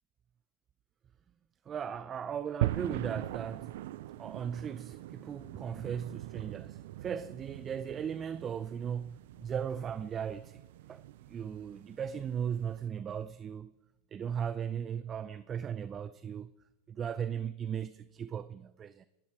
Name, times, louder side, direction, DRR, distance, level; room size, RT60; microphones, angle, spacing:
voice 1, 1.7-3.7 4.2-10.6 10.9-13.7 14.1-16.5 16.9-19.0, right 8 dB, 30° right, 0.6 m, -37 dB
sound 1, 2.6-12.9, right 15 dB, 75° right, 0.5 m, -41 dB
22.0 x 13.5 x 4.8 m
supercardioid pair, 115°, 0 cm